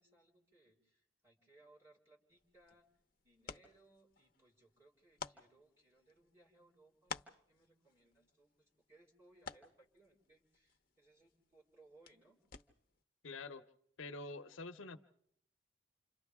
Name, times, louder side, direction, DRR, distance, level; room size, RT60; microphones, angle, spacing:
voice 1, 0.0-2.9 3.2-12.4, right 2 dB, 15° right, -3 dB, 4.3 m, -67 dB
sound 1, 2.3-13.0, left 5 dB, 45° left, 0.8 m, -54 dB
voice 2, 13.2-13.6 14.0-15.0, left 3 dB, 85° left, 11 dB, 0.8 m, -46 dB
29.5 x 27.0 x 3.6 m, 0.73 s
head